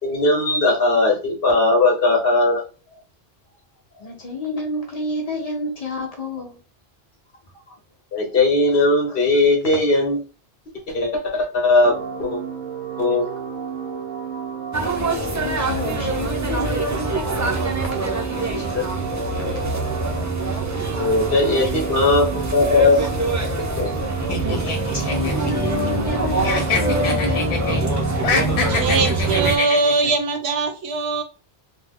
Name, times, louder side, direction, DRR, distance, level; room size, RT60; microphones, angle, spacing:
voice 1, 0.0-2.7 8.1-10.2 10.9-12.4 13.0-13.3 18.5-18.8 20.9-23.1 23.8-24.0, left 2 dB, 60° left, 0 dB, 1.2 m, -19 dB
voice 2, 4.0-6.6 15.3-18.0 19.4-19.5 22.9-23.1 23.4-23.6 24.7-27.7, left 2 dB, 40° left, 1 dB, 0.9 m, -29 dB
sound 1, 11.8-29.5, right 5 dB, 55° right, 0.7 m, -31 dB
sound 2, 14.7-29.6, right 2 dB, 30° right, 0.3 m, -25 dB
sound 3, 24.3-26.2 26.4-27.8 28.1-30.1, left 4 dB, 80° left, 1.0 m, -25 dB
voice 3, 28.4-31.2, right 3 dB, 85° right, 7 dB, 0.9 m, -22 dB
3.1 x 2.0 x 3.5 m, 0.35 s
omnidirectional pair, 1.1 m